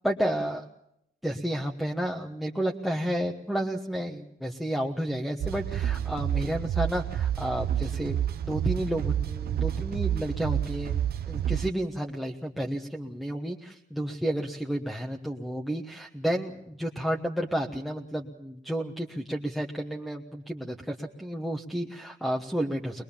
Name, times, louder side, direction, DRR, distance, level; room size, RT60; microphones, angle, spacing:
voice 1, 0.0-0.6 1.2-8.2 8.5-11.0 11.3-23.0, right 1 dB, ahead, 1 dB, 1.3 m, -31 dB
sound 1, 5.4-11.7, right 10 dB, 60° right, 1.0 m, -29 dB
22.0 x 21.0 x 7.1 m, 0.75 s
cardioid pair, 130°, 18 cm